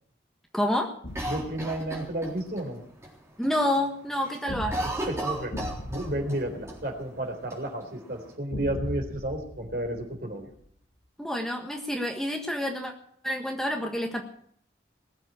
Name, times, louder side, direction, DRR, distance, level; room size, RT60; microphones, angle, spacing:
voice 1, 0.5-0.9 3.4-4.8 11.2-12.9 13.2-14.2, left 1 dB, ahead, 1 dB, 1.5 m, -28 dB
sound 1, 1.0-2.4 4.5-7.4 8.5-10.7, equal, 75° left, 7.2 m, -39 dB
Cough, 1.1-2.6 3.0-3.1 3.4-3.8 4.1-6.4 6.7-6.8 7.5-8.3, right 1 dB, 15° right, 3.7 m, -34 dB
voice 2, 1.3-2.8 4.8-5.6 5.9-10.5, right 1 dB, 55° right, 3 dB, 3.9 m, -32 dB
20.5 x 7.7 x 8.8 m, 0.64 s
head